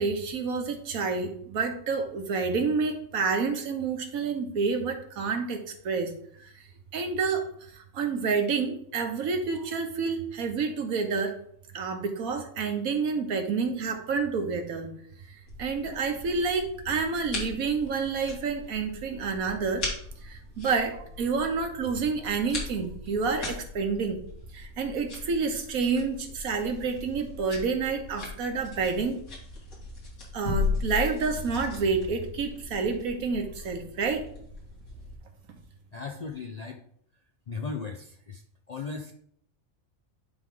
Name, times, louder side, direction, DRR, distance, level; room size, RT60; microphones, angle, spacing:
voice 1, 0.0-6.1 6.4-6.5 6.9-7.5 7.7-11.3 11.7-14.9 15.6-19.9 20.2-24.2 24.5-29.2 30.3-34.3, right 5 dB, 90° right, 5 dB, 1.4 m, -29 dB
sound 1, 15.5-35.2, left 3 dB, 85° left, 2.5 m, -38 dB
voice 2, 35.9-36.8 37.5-38.4 38.7-39.1, left 4 dB, 60° left, 2 dB, 0.4 m, -36 dB
10.5 x 3.5 x 3.7 m, 0.66 s
omnidirectional pair, 1.4 m